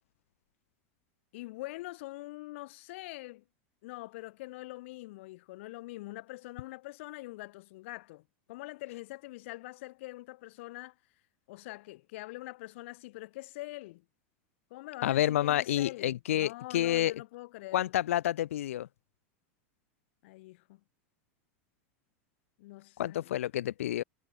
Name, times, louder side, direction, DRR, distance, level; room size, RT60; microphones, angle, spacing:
voice 1, 1.3-3.4 3.8-11.0 11.5-14.0 14.7-17.9 20.2-20.8 22.6-23.4, left 20 dB, 65° left, 7.7 m, -44 dB
voice 2, 15.0-17.1 17.7-18.9 23.0-24.0, left 12 dB, 90° left, 2.5 m, -29 dB
supercardioid pair, 140°, 7 cm